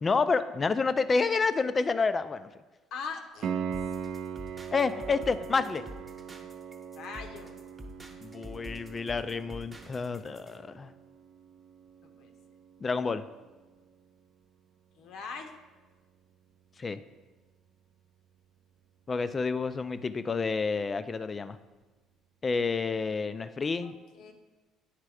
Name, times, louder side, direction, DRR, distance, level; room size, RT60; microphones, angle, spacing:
voice 1, 0.0-2.5 4.7-5.8 8.2-10.9 12.8-13.2 16.8-17.0 19.1-21.6 22.4-23.9, left 4 dB, 30° left, 12 dB, 0.4 m, -29 dB
voice 2, 2.9-3.5 7.0-7.6 12.2-12.3 15.0-15.5 23.8-24.3, left 5 dB, 70° left, 5 dB, 0.8 m, -41 dB
Piano, 3.4-14.1 17.4-17.5, right 7 dB, 55° right, 0.5 m, -41 dB
sound 1, 3.7-10.6, equal, 20° right, 1.0 m, -47 dB
9.4 x 3.3 x 4.8 m, 1.3 s
cardioid pair, 95°, 0 cm